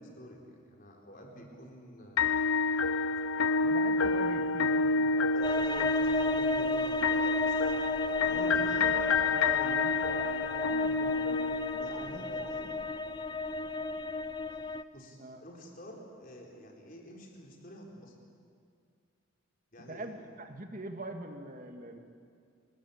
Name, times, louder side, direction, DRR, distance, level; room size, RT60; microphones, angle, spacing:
voice 1, 0.0-2.3 5.3-7.8 8.2-8.9 11.8-12.7 14.9-18.1 19.7-20.0, equal, 40° left, 0 dB, 4.4 m, -48 dB
sound 1, 2.2-12.2, left 4 dB, 70° left, 0.5 m, -28 dB
voice 2, 3.6-5.3 8.3-12.5 15.2-15.4 19.9-22.0, right 2 dB, 40° right, 5 dB, 2.1 m, -43 dB
sound 2, 5.4-14.8, left 3 dB, 20° left, 0.5 m, -34 dB
27.5 x 20.5 x 8.7 m, 2.2 s
head